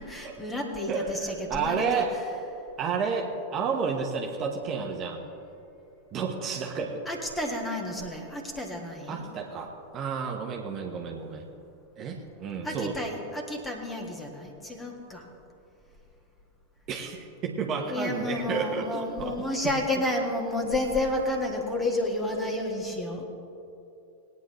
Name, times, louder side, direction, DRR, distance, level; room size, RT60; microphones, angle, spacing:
voice 1, 0.0-2.0 7.1-9.2 12.6-15.3 17.9-23.2, left 1 dB, 10° left, 2 dB, 1.9 m, -31 dB
voice 2, 0.9-2.1 2.8-5.2 6.1-7.0 9.1-11.4 12.0-13.0 16.9-19.5, right 5 dB, 30° right, 1 dB, 1.2 m, -31 dB
20.5 x 9.5 x 3.2 m, 2.8 s
figure-of-eight pair, 90°, 0 cm